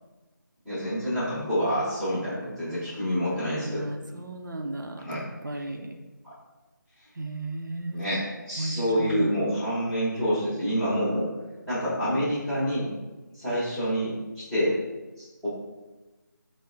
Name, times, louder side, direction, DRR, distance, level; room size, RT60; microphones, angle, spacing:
voice 1, 0.6-3.9 5.0-5.2 5.5-5.6 6.2-6.3 7.9-11.3 11.7-12.9 13.4-14.8 15.2-15.5, equal, 5° left, -15 dB, 0.8 m, -27 dB
voice 2, 3.3-5.9 7.2-8.1 8.6-8.7 9.0-9.2, right 1 dB, 70° right, 3 dB, 0.4 m, -35 dB
4.4 x 2.1 x 2.5 m, 1.2 s
figure-of-eight pair, 160°, 11 cm